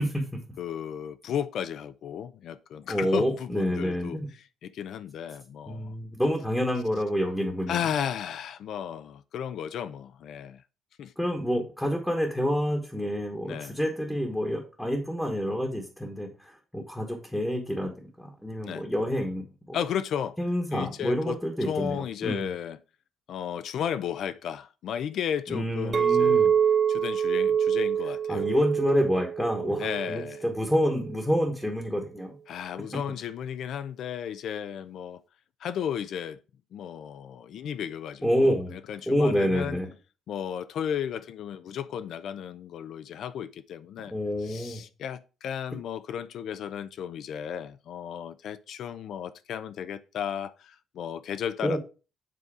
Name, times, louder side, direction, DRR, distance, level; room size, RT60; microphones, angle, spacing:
voice 1, 0.0-0.4 2.9-4.3 5.7-7.9 11.2-19.8 20.4-22.5 25.5-26.5 28.3-32.4 38.2-38.7 39.1-39.9 44.1-44.8 51.6-51.8, equal, 5° left, 1.2 m, -28 dB
voice 2, 0.6-4.2 4.6-5.9 7.7-10.6 11.0-11.1 13.4-13.8 18.6-18.9 19.7-20.4 20.7-22.8 23.3-26.5 26.9-28.5 29.8-30.4 32.5-35.2 35.6-36.4 36.7-39.8 40.3-44.1 44.4-51.8, left 8 dB, 60° left, 0.5 m, -34 dB
Chink clink, 25.9-31.2, right 8 dB, 30° right, 0.4 m, -26 dB
7.5 x 3.9 x 4.8 m
cardioid pair, 160°, 0 cm